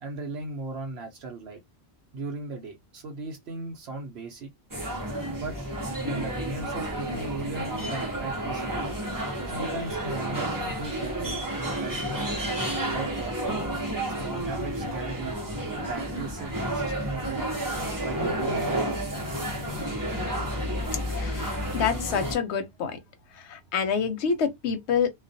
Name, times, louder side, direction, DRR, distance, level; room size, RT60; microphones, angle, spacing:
voice 1, 0.0-1.6 2.1-4.5 5.3-5.6 6.0-8.9 9.5-12.3 12.9-13.7 14.1-15.4 15.9-17.5 18.0-18.7, right 3 dB, 75° right, 0.9 m, -37 dB
sound 1, 4.7-22.4, right 1 dB, 20° right, 0.7 m, -31 dB
voice 2, 21.1-23.0 23.3-25.1, left 6 dB, 85° left, 0.9 m, -27 dB
2.3 x 2.2 x 2.5 m
omnidirectional pair, 1.1 m